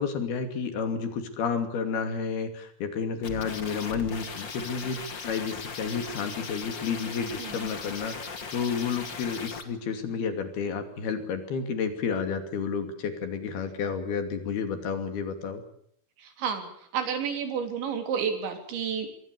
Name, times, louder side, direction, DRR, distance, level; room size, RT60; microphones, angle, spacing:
voice 1, 0.0-5.0 5.2-15.6, left 6 dB, 65° left, 8 dB, 4.5 m, -31 dB
sound 1, 3.2-9.6, left 5 dB, 35° left, 2.1 m, -38 dB
voice 2, 7.4-7.7 16.2-19.1, right 7 dB, 85° right, 6 dB, 5.8 m, -31 dB
26.0 x 21.0 x 6.9 m, 0.67 s
omnidirectional pair, 5.1 m